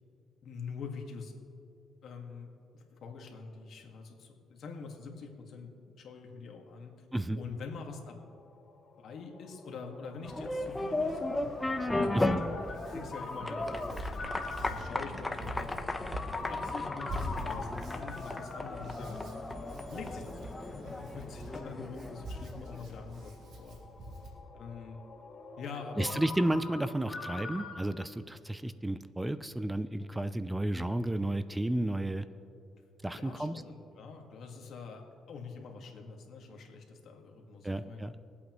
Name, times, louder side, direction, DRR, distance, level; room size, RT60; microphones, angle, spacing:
voice 1, 0.4-1.3 2.0-6.9 7.4-8.2 9.0-14.3 14.7-15.7 16.4-19.2 19.9-23.8 24.5-25.0 25.6-26.2 33.1-38.1, left 5 dB, 65° left, 2 dB, 1.8 m, -45 dB
Ringtone, 8.1-27.8, left 3 dB, 40° left, 2.5 m, -44 dB
sound 1, 10.2-23.0, left 2 dB, 15° left, 0.8 m, -36 dB
Hands, 10.2-24.3, equal, 75° right, 2.9 m, -45 dB
voice 2, 26.0-32.2 33.0-33.5 37.6-38.1, right 1 dB, 10° right, 12 dB, 0.5 m, -32 dB
22.5 x 8.4 x 3.1 m, 2.6 s
cardioid pair, 90°, 0 cm